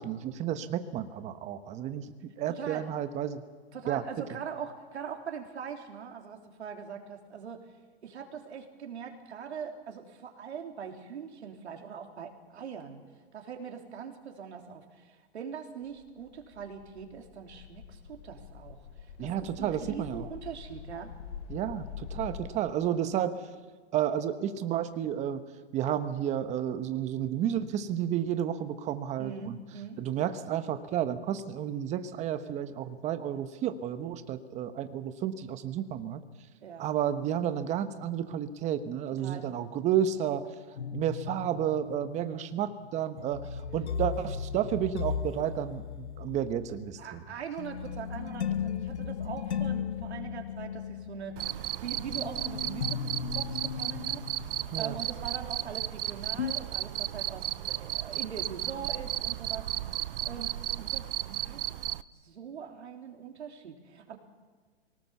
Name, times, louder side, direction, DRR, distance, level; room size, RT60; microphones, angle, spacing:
voice 1, 0.0-3.4 3.9-4.0 19.2-20.2 21.5-23.4 23.9-25.4 25.7-29.6 30.0-36.2 36.8-40.5 40.9-47.2 54.7-55.0, right 10 dB, 20° right, 10 dB, 1.1 m, -31 dB
voice 2, 2.5-2.9 3.7-7.6 8.0-13.0 13.3-21.1 29.2-30.0 36.6-36.9 39.2-39.5 47.0-59.7 60.2-61.7 62.1-64.2, right 7 dB, 80° right, 3 dB, 3.5 m, -42 dB
sound 1, 15.9-22.5, left 7 dB, 65° left, 3.3 m, -45 dB
sound 2, 40.8-56.0 56.4-56.5, left 7 dB, 85° left, 1.3 m, -36 dB
Cricket, 51.4-62.0, right 13 dB, 55° right, 0.7 m, -34 dB
24.5 x 18.5 x 7.1 m, 1.4 s
hypercardioid pair, 140°, 33 cm